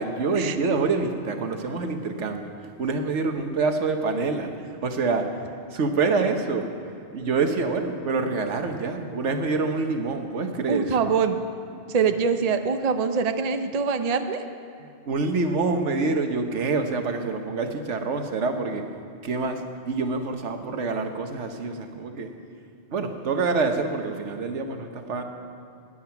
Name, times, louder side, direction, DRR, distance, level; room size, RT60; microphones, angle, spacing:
voice 1, 0.0-2.5 2.8-6.7 7.1-11.0 14.8-18.8 19.2-22.3 22.9-25.2, right 4 dB, 90° right, 6 dB, 1.4 m, -26 dB
voice 2, 10.7-11.4 11.9-14.4, right 5 dB, 40° right, 8 dB, 0.7 m, -24 dB
16.5 x 10.0 x 5.8 m, 2.4 s
omnidirectional pair, 1.2 m